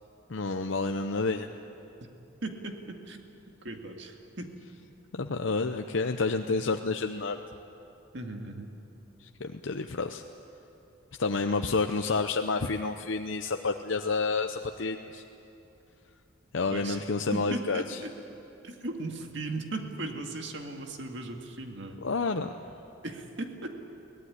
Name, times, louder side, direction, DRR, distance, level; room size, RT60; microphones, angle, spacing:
voice 1, 0.3-1.5 5.1-7.4 9.2-10.2 11.2-15.2 16.5-18.0 22.0-22.5, left 3 dB, 70° left, 6 dB, 0.7 m, -29 dB
voice 2, 2.4-3.3 3.6-4.5 8.1-8.7 16.7-17.0 17.3-18.1 18.6-22.0 23.0-23.8, right 2 dB, 60° right, 3 dB, 2.1 m, -37 dB
23.0 x 17.5 x 9.9 m, 2.9 s
head